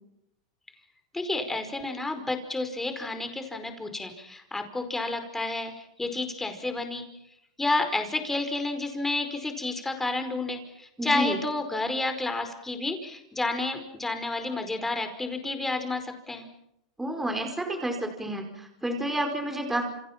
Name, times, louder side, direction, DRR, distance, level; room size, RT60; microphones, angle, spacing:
voice 1, 1.1-7.0 7.6-16.5, left 2 dB, 10° left, 7 dB, 4.9 m, -30 dB
voice 2, 11.0-11.4 17.0-19.8, right 1 dB, 5° right, 4 dB, 4.9 m, -30 dB
30.0 x 29.0 x 6.0 m, 0.80 s
supercardioid pair, 120°, 3 cm